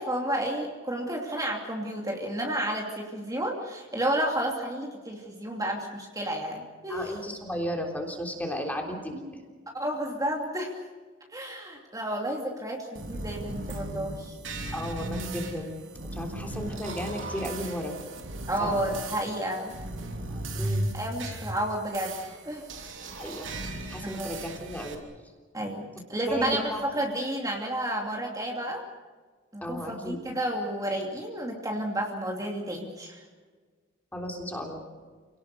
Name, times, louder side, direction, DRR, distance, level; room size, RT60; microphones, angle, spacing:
voice 1, 0.0-7.2 9.8-10.7 11.3-14.4 18.5-19.7 20.1-22.2 22.4-22.9 24.0-24.4 25.5-28.8 29.5-33.2, right 1 dB, 20° right, 0 dB, 2.7 m, -31 dB
voice 2, 6.9-9.3 14.7-15.8 16.1-18.0 18.6-18.8 20.6-20.8 23.1-23.5 23.9-25.0 26.3-26.9 29.6-30.2 34.1-34.8, equal, 10° left, 2 dB, 3.6 m, -34 dB
sound 1, 12.9-24.9, right 1 dB, 80° right, 3.2 m, -36 dB
28.0 x 18.5 x 6.8 m, 1.5 s
head